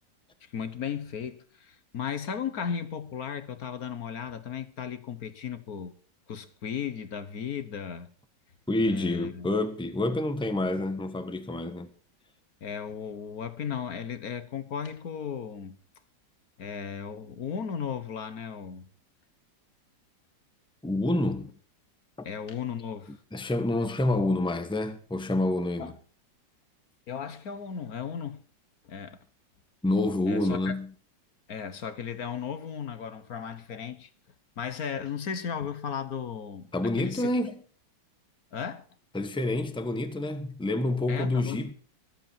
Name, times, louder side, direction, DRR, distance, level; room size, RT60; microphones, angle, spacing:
voice 1, 0.4-5.9 6.3-8.1 8.8-9.5 12.6-15.8 16.6-18.9 22.2-23.2 25.8-25.9 27.1-28.4 28.8-29.2 30.3-30.7 31.5-34.1 34.6-37.3 38.5-38.8 41.1-41.7, left 7 dB, 55° left, 1.5 m, -35 dB
voice 2, 8.7-11.9 20.8-21.5 22.2-22.3 23.1-25.9 29.8-30.9 36.7-37.6 39.1-41.7, left 2 dB, 5° left, 1.0 m, -28 dB
24.0 x 8.4 x 4.5 m
omnidirectional pair, 2.0 m